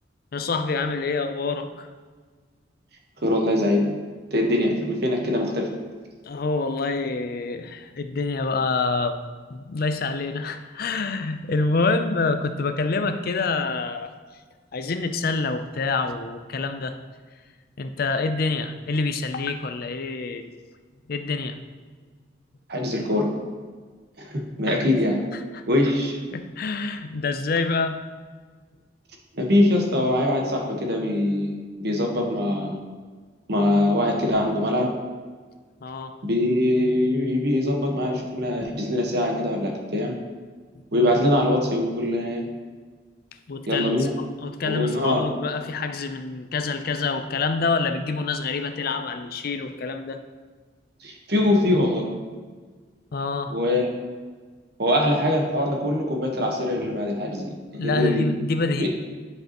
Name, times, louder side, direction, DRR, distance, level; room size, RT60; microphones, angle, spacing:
voice 1, 0.3-1.9 6.2-9.2 9.5-14.1 14.7-17.0 17.8-20.5 21.1-21.6 24.7-25.0 25.3-25.6 26.3-28.0 35.8-36.2 43.5-44.1 44.4-50.2 53.1-53.6 57.8-58.9, left 3 dB, 55° left, 8 dB, 0.5 m, -27 dB
voice 2, 3.2-3.9 4.3-5.7 22.7-23.3 24.2-25.2 25.7-26.2 29.3-32.8 33.5-34.9 36.2-40.1 40.9-42.4 43.7-44.1 44.6-45.3 51.0-52.1 53.5-54.0 54.8-58.3 58.8-58.9, left 1 dB, 60° right, 1 dB, 1.3 m, -23 dB
10.0 x 5.4 x 3.0 m, 1.5 s
head